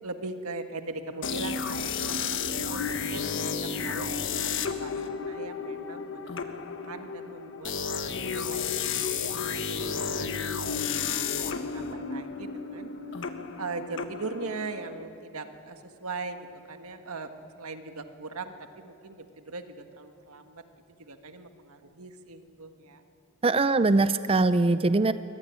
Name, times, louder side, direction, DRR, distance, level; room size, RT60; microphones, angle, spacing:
voice 1, 0.0-12.9 13.2-20.6 21.0-23.0, right 3 dB, 85° right, 7 dB, 1.6 m, -40 dB
sound 1, 1.2-14.9, left 5 dB, 60° left, 1.4 m, -32 dB
voice 2, 23.4-25.1, right 3 dB, 25° right, 12 dB, 0.5 m, -22 dB
23.5 x 18.5 x 10.0 m, 2.7 s
head